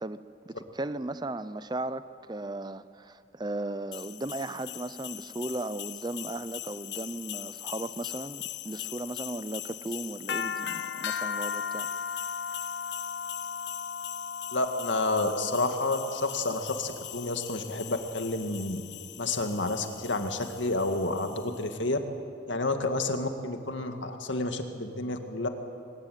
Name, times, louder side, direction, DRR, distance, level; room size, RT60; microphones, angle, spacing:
voice 1, 0.0-11.9, right 2 dB, 25° right, 14 dB, 0.6 m, -36 dB
sound 1, 3.9-21.6, left 8 dB, 70° left, 0.6 m, -38 dB
voice 2, 14.5-18.8 19.2-22.0 22.5-25.5, left 2 dB, 90° left, 6 dB, 2.0 m, -30 dB
23.0 x 20.5 x 9.4 m, 2.4 s
head